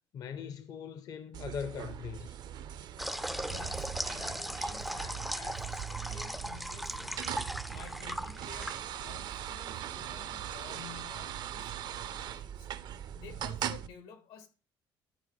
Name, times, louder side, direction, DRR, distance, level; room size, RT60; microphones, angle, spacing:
voice 1, 0.1-2.4, left 7 dB, 45° left, 0.6 m, -40 dB
sonidos barra de cafe, 1.3-13.9, right 10 dB, 55° right, 0.5 m, -41 dB
sound 1, 3.0-9.2, equal, ahead, 0.3 m, -38 dB
Rattle, 3.2-11.6, right 11 dB, 90° right, 0.8 m, -50 dB
voice 2, 3.4-7.4 7.7-12.7 13.1-14.5, left 7 dB, 85° left, 1.8 m, -52 dB
12.5 x 4.6 x 4.1 m
cardioid pair, 130°, 9 cm